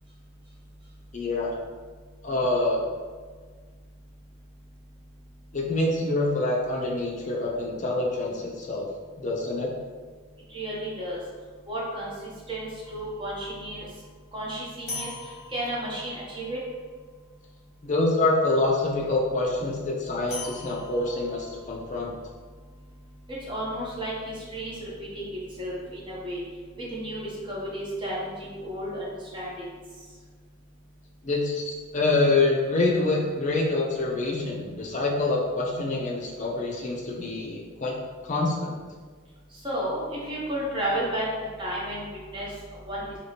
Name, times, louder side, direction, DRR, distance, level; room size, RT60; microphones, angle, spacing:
voice 1, 1.1-1.5 2.2-2.9 5.5-8.9 9.2-9.7 17.8-22.1 31.2-37.9 38.2-38.7, left 2 dB, 35° left, -2 dB, 0.5 m, -26 dB
voice 2, 10.5-11.2 11.7-12.1 12.5-13.8 14.3-16.6 23.3-26.4 26.8-29.8 39.6-43.0, right 1 dB, 25° right, -6 dB, 0.8 m, -33 dB
sound 1, 12.8-18.9 20.3-24.3, left 3 dB, 50° left, 0.9 m, -44 dB
3.3 x 2.9 x 2.8 m, 1.5 s
head